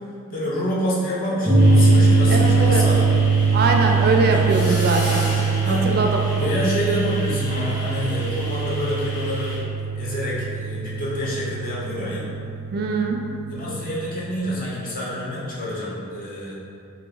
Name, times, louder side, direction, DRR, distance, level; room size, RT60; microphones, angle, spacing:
voice 1, 0.3-3.0 4.3-4.8 5.6-5.9 6.4-9.6 9.9-12.3 13.5-16.5, equal, 40° left, -6 dB, 0.7 m, -27 dB
sound 1, 1.5-14.4, right 4 dB, 15° left, 1.1 m, -22 dB
sound 2, 1.6-9.6, left 1 dB, 75° left, 1.1 m, -35 dB
voice 2, 2.3-2.8 3.5-5.3 5.7-6.2 12.7-13.2, right 3 dB, 45° right, 2 dB, 0.4 m, -22 dB
2.9 x 2.8 x 3.9 m, 2.6 s
head